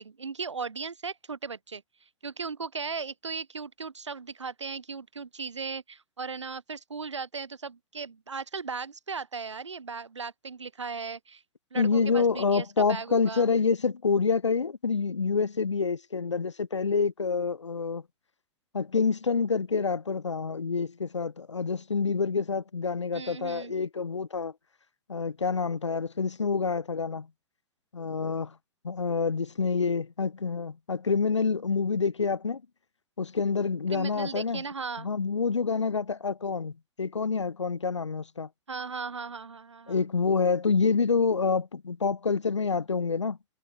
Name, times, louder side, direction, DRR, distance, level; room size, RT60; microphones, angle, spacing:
voice 1, 0.0-1.8 2.2-11.4 11.7-13.5 23.1-23.7 33.9-35.1 38.7-39.9, right 5 dB, 90° right, 1.1 m, -37 dB
voice 2, 11.7-18.0 18.7-24.5 25.1-27.3 27.9-28.5 28.8-32.6 33.2-34.6 35.0-38.5 39.9-43.4, left 5 dB, 90° left, 1.1 m, -27 dB
hypercardioid pair, 105°, 15 cm